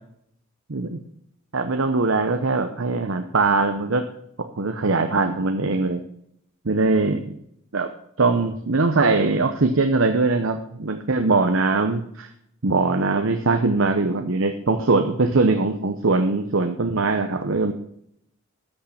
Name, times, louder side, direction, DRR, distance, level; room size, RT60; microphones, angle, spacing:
voice 1, 1.5-4.0 4.6-6.0 6.6-7.3 7.7-7.9 8.2-12.3 12.6-17.7, right 3 dB, 70° right, 6 dB, 0.8 m, -21 dB
13.5 x 6.4 x 5.8 m, 0.71 s
head